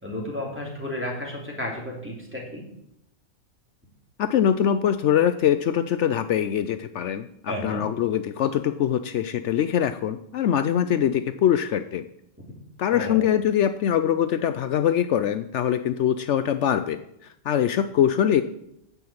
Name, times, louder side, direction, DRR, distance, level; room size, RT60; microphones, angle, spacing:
voice 1, 0.0-2.6 7.5-7.8 12.9-13.2, left 1 dB, 10° right, -2 dB, 3.2 m, -32 dB
voice 2, 4.2-12.0 12.8-17.0 17.4-18.4, left 9 dB, 70° left, 11 dB, 0.9 m, -23 dB
9.9 x 7.0 x 8.6 m, 0.79 s
omnidirectional pair, 1.3 m